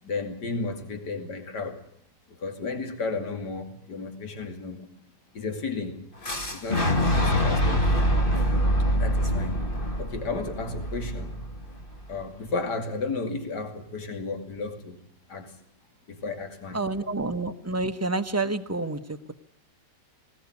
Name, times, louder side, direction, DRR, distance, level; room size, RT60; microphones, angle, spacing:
voice 1, 0.0-1.8 2.3-4.9 5.3-6.0 6.5-7.9 9.0-9.7 10.0-11.5 12.1-15.0 15.3-15.6 16.1-16.8, left 3 dB, 65° left, 5 dB, 3.1 m, -33 dB
Boom, 6.2-12.1, equal, 30° left, 1.7 m, -25 dB
voice 2, 16.7-19.3, right 2 dB, 15° right, 8 dB, 0.7 m, -29 dB
20.0 x 19.5 x 9.5 m, 0.67 s
omnidirectional pair, 1.9 m